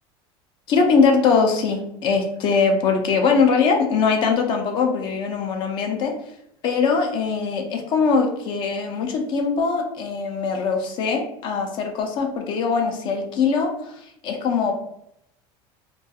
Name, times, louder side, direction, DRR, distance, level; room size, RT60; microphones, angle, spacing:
voice 1, 0.7-6.1 6.6-13.9 14.2-14.7, left 5 dB, 40° left, 3 dB, 0.4 m, -21 dB
2.3 x 2.2 x 2.7 m, 0.77 s
cardioid pair, 160°, 13 cm